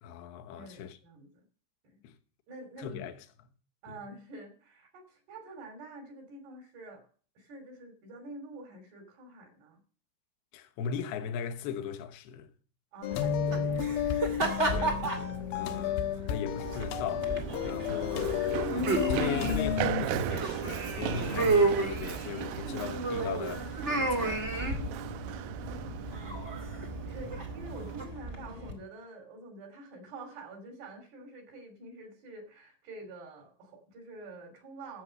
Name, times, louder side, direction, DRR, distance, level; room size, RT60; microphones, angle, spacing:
voice 1, 0.0-1.0 2.0-2.1 2.8-3.2 10.5-12.5 14.7-24.5 26.3-26.4, left 7 dB, 70° left, 2.8 m, -38 dB
voice 2, 0.5-1.3 1.8-2.0 2.5-3.0 3.8-7.1 7.4-9.8 12.9-14.0 15.6-16.3 25.6-35.0, right 2 dB, 65° right, 4.9 m, -47 dB
sound 1, 13.0-20.1, left 9 dB, 85° left, 3.4 m, -32 dB
sound 2, 13.1-28.7, right 3 dB, 30° right, 1.2 m, -33 dB
Run, 16.5-28.0, right 11 dB, 85° right, 2.3 m, -37 dB
14.0 x 7.6 x 6.4 m
omnidirectional pair, 5.3 m